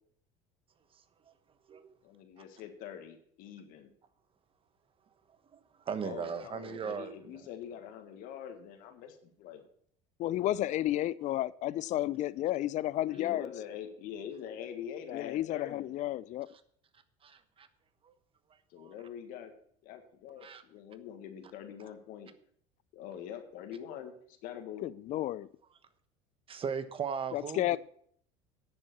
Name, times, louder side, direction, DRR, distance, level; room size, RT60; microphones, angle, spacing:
voice 1, 2.0-3.9 6.0-9.7 13.1-15.9 18.7-19.5 19.8-22.3 22.9-24.8, left 9 dB, 65° left, 6 dB, 1.7 m, -44 dB
voice 2, 5.9-7.1 17.2-17.7 18.8-18.9 20.4-20.6 26.5-27.8, right 6 dB, 35° right, 11 dB, 1.2 m, -37 dB
voice 3, 10.2-13.5 15.1-16.5 24.8-25.5 27.3-27.8, left 14 dB, 50° left, 20 dB, 0.5 m, -32 dB
9.8 x 7.1 x 6.1 m, 0.63 s
supercardioid pair, 85°, 16 cm